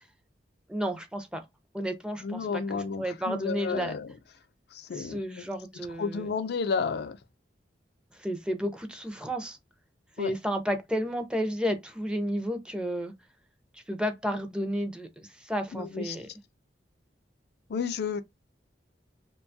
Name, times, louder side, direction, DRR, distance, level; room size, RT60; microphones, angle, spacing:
voice 1, 0.7-1.4 1.7-3.9 4.9-6.3 8.2-9.6 10.2-13.1 13.7-16.3, equal, 5° right, 0.5 m, -32 dB
voice 2, 2.2-4.1 4.7-5.5 6.0-7.2 10.2-10.3 15.7-16.2 17.7-18.2, left 5 dB, 60° left, 0.4 m, -32 dB
2.8 x 2.2 x 2.6 m
head